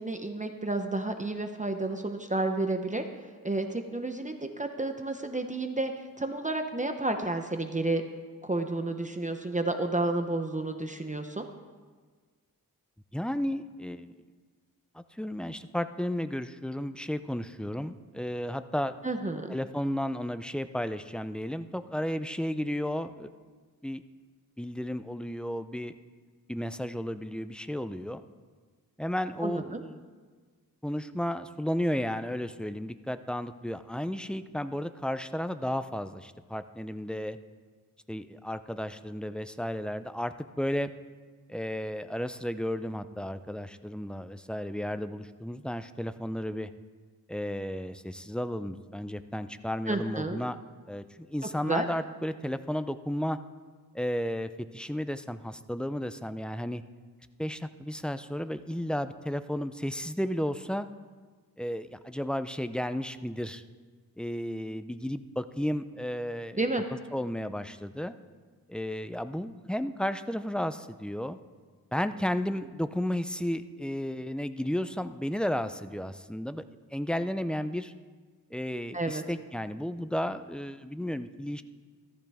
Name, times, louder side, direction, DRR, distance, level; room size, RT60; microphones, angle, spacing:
voice 1, 0.0-3.1 3.4-8.0 8.4-11.5 19.0-19.6 29.4-29.8 49.9-50.4 51.6-51.9 66.6-66.8 78.9-79.2, right 2 dB, 20° right, 6 dB, 0.9 m, -31 dB
voice 2, 13.1-14.1 14.9-18.9 19.5-23.3 23.8-24.0 24.6-25.9 26.5-28.2 29.0-30.0 30.8-37.4 38.1-40.9 41.5-46.7 47.3-50.6 50.9-53.4 53.9-56.8 57.4-60.9 61.6-63.6 64.2-66.6 67.1-68.2 68.7-71.4 71.9-76.6 76.9-77.9 78.5-81.6, equal, 5° left, 11 dB, 0.5 m, -33 dB
14.5 x 13.5 x 3.6 m, 1.5 s
cardioid pair, 65°, 36 cm